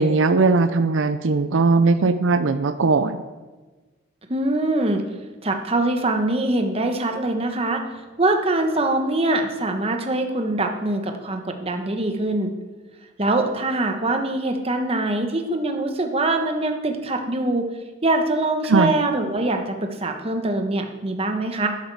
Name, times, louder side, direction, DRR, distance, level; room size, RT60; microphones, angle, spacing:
voice 1, 0.0-3.2 18.7-18.9, right 3 dB, 80° right, 11 dB, 0.6 m, -19 dB
voice 2, 4.3-5.0 5.4-7.8 8.2-12.5 13.2-17.7 18.0-21.7, right 2 dB, 30° right, 4 dB, 1.2 m, -23 dB
12.0 x 11.5 x 4.8 m, 1.2 s
head